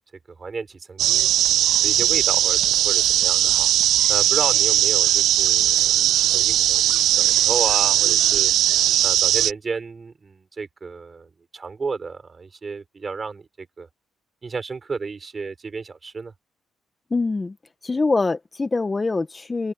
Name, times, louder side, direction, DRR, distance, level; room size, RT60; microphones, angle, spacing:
voice 1, 0.3-1.3 1.8-3.7 4.1-8.5 9.0-13.9 14.4-16.3, right 4 dB, 35° right, 6.1 m, -33 dB
sound 1, 1.0-9.5, right 13 dB, 80° right, 0.3 m, -19 dB
voice 2, 17.1-17.5 17.8-19.7, left 3 dB, 25° left, 1.4 m, -24 dB
open air
cardioid pair, 90°, 0 cm